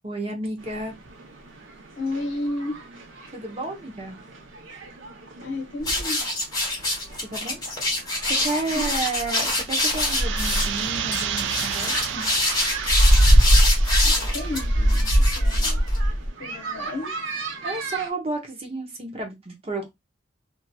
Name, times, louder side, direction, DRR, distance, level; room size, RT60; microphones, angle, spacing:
voice 1, 0.0-0.9 3.3-4.2 7.3-7.6 8.3-12.3 17.6-19.9, right 2 dB, 30° right, 0.8 m, -31 dB
sound 1, 0.6-18.1, right 4 dB, 85° right, 0.8 m, -40 dB
voice 2, 2.0-2.8 5.4-6.2 8.7-9.0 14.0-15.8 16.4-17.2, left 2 dB, 85° left, 0.8 m, -32 dB
sound 2, 5.8-16.3, equal, 20° left, 1.3 m, -21 dB
sound 3, 9.6-15.3, right 9 dB, 70° right, 0.3 m, -32 dB
2.8 x 2.8 x 2.3 m
head